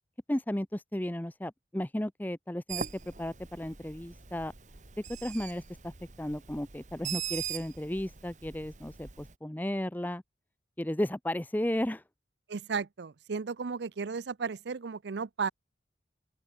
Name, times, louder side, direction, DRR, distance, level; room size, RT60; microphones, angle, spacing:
voice 1, 0.3-2.8 3.2-4.5 5.2-5.9 6.2-10.2 10.8-12.0, left 1 dB, 10° left, 0.6 m, -34 dB
Bird, 2.7-9.4, right 8 dB, 40° right, 1.6 m, -41 dB
voice 2, 12.5-15.5, right 5 dB, 70° right, 0.5 m, -34 dB
open air
head